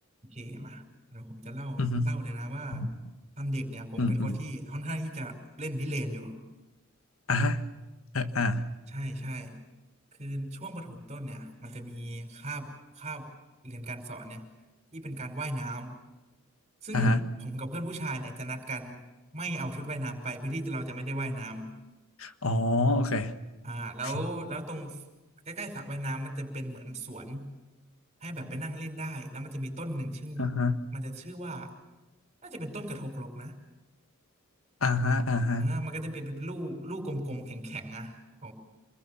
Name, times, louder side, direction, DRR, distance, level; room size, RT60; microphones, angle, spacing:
voice 1, 0.2-0.8 1.1-2.9 3.4-6.4 8.6-9.6 10.2-12.7 13.0-13.3 13.6-14.4 14.9-16.0 16.8-17.1 17.4-19.0 19.3-21.7 23.6-25.0 25.5-27.5 28.2-30.5 30.9-31.7 32.4-33.5 35.6-38.5, right 1 dB, 30° right, 4 dB, 5.4 m, -36 dB
voice 2, 1.8-2.1 2.7-2.9 4.0-4.4 7.3-7.6 8.1-8.6 16.9-17.2 22.2-23.3 24.1-24.2 30.4-30.8 34.8-35.8, left 2 dB, 75° left, 9 dB, 1.5 m, -26 dB
28.0 x 21.5 x 7.1 m, 1.1 s
head